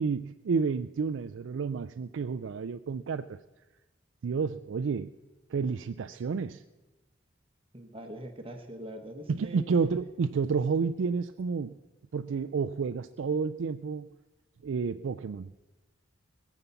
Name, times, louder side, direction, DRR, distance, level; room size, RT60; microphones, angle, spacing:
voice 1, 0.0-3.4 4.2-5.1 5.5-6.6 9.3-11.8 12.1-14.1 14.6-15.5, right 5 dB, 80° right, 10 dB, 0.4 m, -30 dB
voice 2, 7.7-9.6, right 1 dB, 30° right, 5 dB, 1.0 m, -42 dB
21.0 x 7.2 x 6.9 m, 1.2 s
head